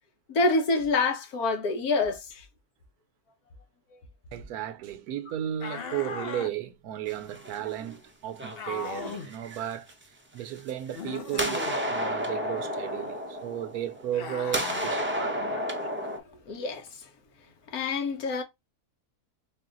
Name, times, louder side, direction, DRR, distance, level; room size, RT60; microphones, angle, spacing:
voice 1, 0.3-2.4 3.9-4.0 16.1-17.1 17.7-18.4, left 3 dB, 70° left, 1.5 m, -27 dB
voice 2, 4.3-9.9 10.3-15.6, right 11 dB, 75° right, 1.1 m, -34 dB
sound 1, 5.6-6.5 8.5-9.3 10.9-11.8 14.1-14.9, left 5 dB, 55° left, 0.7 m, -37 dB
sound 2, 7.1-7.9 8.4-9.9 10.6-11.0 11.3-14.2 14.5-16.2, equal, 15° right, 0.4 m, -32 dB
4.0 x 2.4 x 3.8 m
omnidirectional pair, 1.7 m